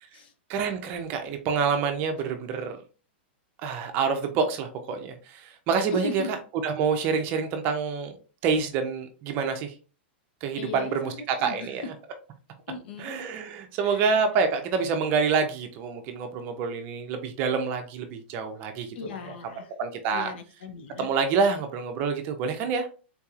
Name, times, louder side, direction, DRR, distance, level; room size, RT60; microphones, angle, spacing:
voice 1, 0.5-2.8 3.6-6.4 6.6-8.2 8.4-9.7 10.4-11.9 13.0-19.1 19.8-20.3 21.0-22.9, right 5 dB, 30° right, 6 dB, 0.5 m, -27 dB
voice 2, 5.9-6.3 10.6-11.7 12.7-13.2 13.8-14.0 19.0-19.7 20.1-21.1, left 4 dB, 65° left, 9 dB, 0.6 m, -37 dB
3.8 x 2.9 x 2.4 m, 0.35 s
supercardioid pair, 160°, 6 cm